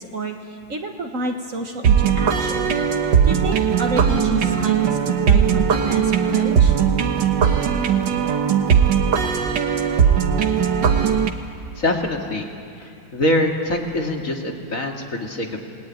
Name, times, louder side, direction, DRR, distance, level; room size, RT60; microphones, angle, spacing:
voice 1, 0.0-2.7 3.2-6.8, right 4 dB, 50° right, 4 dB, 1.7 m, -29 dB
sound 1, 1.8-11.3, right 7 dB, 75° right, 1.9 m, -18 dB
voice 2, 11.8-12.5 12.8-15.6, left 1 dB, 45° left, 1 dB, 2.6 m, -24 dB
27.5 x 19.0 x 9.5 m, 2.4 s
omnidirectional pair, 1.9 m